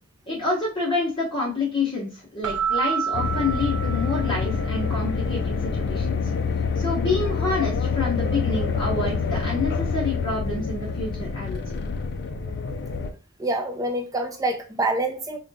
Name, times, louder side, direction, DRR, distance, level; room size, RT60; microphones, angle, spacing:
voice 1, 0.3-6.3 6.8-11.6, left 3 dB, 20° left, -5 dB, 0.9 m, -28 dB
Keyboard (musical), 2.4-4.8, right 7 dB, 70° right, 0.4 m, -28 dB
sound 1, 3.1-13.1, left 5 dB, 50° left, 0.4 m, -26 dB
voice 2, 13.4-15.4, right 2 dB, 15° right, 5 dB, 0.5 m, -26 dB
4.8 x 2.3 x 2.7 m, 0.35 s
head